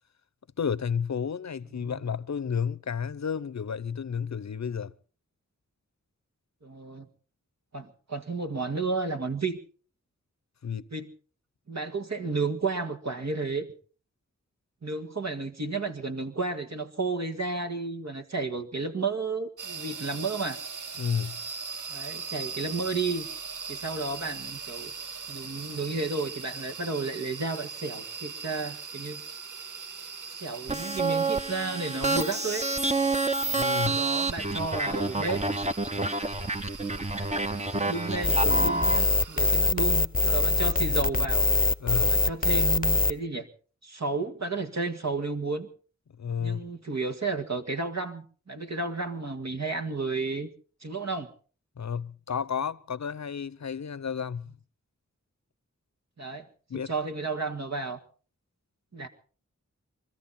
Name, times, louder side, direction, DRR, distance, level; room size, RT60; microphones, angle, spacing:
voice 1, 0.6-4.9 10.6-10.9 21.0-21.4 33.5-34.0 41.8-42.2 46.2-46.6 51.8-54.5 56.7-56.9, left 7 dB, 60° left, 0.7 m, -31 dB
voice 2, 6.6-7.1 7.7-9.6 10.9-11.1 11.7-13.7 14.8-20.6 21.9-23.3 23.7-24.9 25.3-29.2 30.4-32.7 33.9-35.4 37.1-37.4 37.9-41.5 42.1-43.5 43.8-45.7 46.4-50.5 50.8-51.3 56.2-56.5 56.9-58.0 58.9-59.1, right 3 dB, 60° right, 1.9 m, -32 dB
sound 1, 19.6-39.5, right 5 dB, 80° right, 0.9 m, -40 dB
sound 2, 30.7-39.0, right 3 dB, 20° right, 1.0 m, -28 dB
sound 3, 38.2-43.1, left 3 dB, 30° left, 0.8 m, -23 dB
24.0 x 14.0 x 4.2 m
cardioid pair, 45°, 31 cm